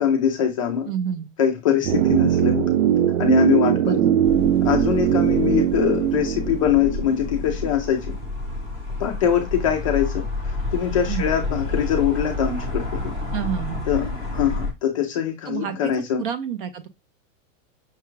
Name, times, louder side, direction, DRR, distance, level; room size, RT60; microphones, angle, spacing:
voice 1, 0.0-0.9 1.4-2.7 3.2-4.0 4.6-8.2 9.0-13.1 13.9-16.2, left 9 dB, 25° left, 0.4 m, -23 dB
voice 2, 0.9-1.3 3.8-4.1 11.1-11.3 13.3-13.8 15.5-15.9 16.2-16.9, right 8 dB, 40° right, 0.4 m, -28 dB
sound 1, 1.8-7.9 8.1-8.2, right 10 dB, 90° right, 0.6 m, -21 dB
sound 2, 4.2-14.7, left 2 dB, 15° right, 0.7 m, -30 dB
5.8 x 2.2 x 3.0 m
supercardioid pair, 175°, 41 cm